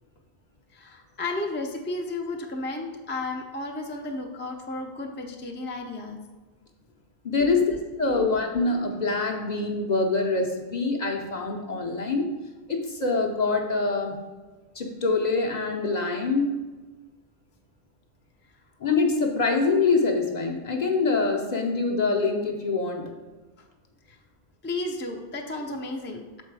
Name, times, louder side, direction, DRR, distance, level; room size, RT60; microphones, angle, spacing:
voice 1, 0.7-6.2 7.5-7.6 8.1-8.3 24.1-24.2 24.6-26.4, left 2 dB, 15° left, 1 dB, 0.5 m, -33 dB
voice 2, 7.2-12.3 12.7-14.2 14.7-16.5 18.8-23.1, left 3 dB, 45° left, 2 dB, 0.8 m, -25 dB
6.7 x 4.4 x 4.7 m, 1.3 s
omnidirectional pair, 1.1 m